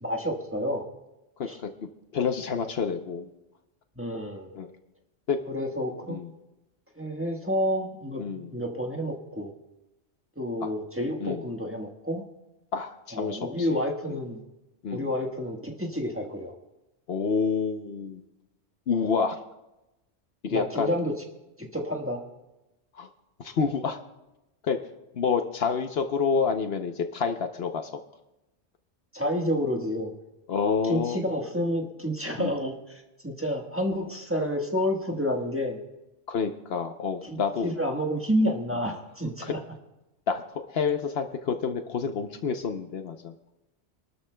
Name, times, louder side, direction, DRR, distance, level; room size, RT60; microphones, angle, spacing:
voice 1, 0.0-0.8 1.5-1.6 4.0-4.5 5.5-6.2 6.9-8.2 8.5-9.5 10.4-12.2 13.1-14.4 14.9-16.5 20.5-21.1 21.6-22.2 29.1-30.1 30.8-35.8 37.2-39.6, equal, 10° right, 1 dB, 1.3 m, -29 dB
voice 2, 1.4-1.7 2.1-3.3 4.6-4.7 5.3-5.4 6.1-6.3 8.2-8.5 10.6-10.7 11.2-11.4 12.7-13.8 14.1-14.2 14.8-15.1 17.1-18.2 18.9-19.4 20.4-20.9 22.9-23.1 23.4-24.0 24.6-24.8 25.1-28.0 30.5-31.2 32.4-32.5 36.3-37.7 39.4-39.5 40.3-43.3, left 5 dB, 65° left, 7 dB, 1.0 m, -28 dB
27.0 x 13.0 x 2.2 m, 0.98 s
omnidirectional pair, 1.1 m